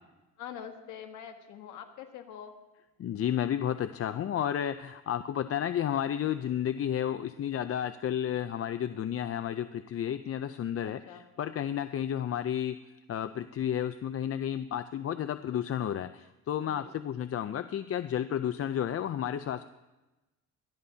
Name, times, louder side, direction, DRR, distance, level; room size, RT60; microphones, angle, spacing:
voice 1, 0.4-2.5 10.8-11.2 16.6-16.9, left 8 dB, 85° left, 4 dB, 1.4 m, -45 dB
voice 2, 3.0-11.0 11.4-12.8 13.1-19.7, left 10 dB, 50° left, 11 dB, 0.6 m, -32 dB
22.0 x 14.5 x 2.8 m, 1.0 s
cardioid pair, 90°, 30 cm